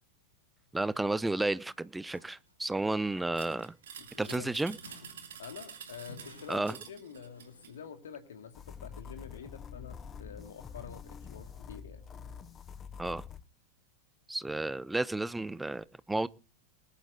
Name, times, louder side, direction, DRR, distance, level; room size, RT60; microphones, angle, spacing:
voice 1, 0.7-3.7 4.2-4.8 6.5-6.8 13.0-13.2 14.3-16.3, right 2 dB, 5° right, 0.6 m, -32 dB
sound 1, 2.1-3.8 4.1-7.7, left 1 dB, 80° left, 5.5 m, -55 dB
sound 2, 3.4-7.8, right 8 dB, 60° right, 2.7 m, -48 dB
voice 2, 4.0-4.5 5.4-12.0, left 7 dB, 65° left, 2.3 m, -47 dB
sound 3, 8.5-13.4, left 6 dB, 25° left, 0.8 m, -46 dB
20.5 x 11.0 x 3.8 m
figure-of-eight pair, 90°, 0 cm